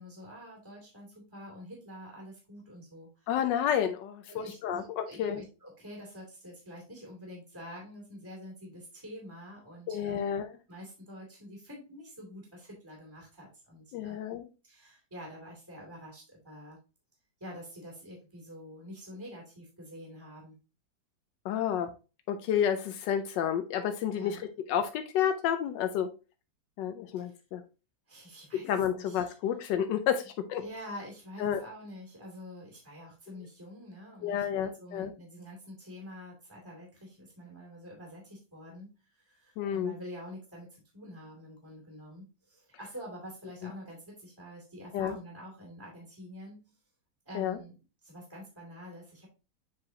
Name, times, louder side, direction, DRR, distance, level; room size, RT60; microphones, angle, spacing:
voice 1, 0.0-3.3 4.3-10.3 10.7-14.2 14.6-16.8 17.4-20.6 24.1-24.5 27.2-27.4 28.1-29.2 30.6-46.8 47.2-49.3, equal, 10° right, -2 dB, 2.6 m, -47 dB
voice 2, 3.3-5.4 9.9-10.5 13.9-14.4 21.4-21.9 22.3-26.1 26.8-27.6 28.5-30.6 31.4-31.6 34.2-35.1 39.6-39.9 44.9-45.1 47.3-47.6, left 9 dB, 90° left, 8 dB, 1.3 m, -30 dB
7.8 x 4.8 x 2.8 m, 0.31 s
omnidirectional pair, 1.9 m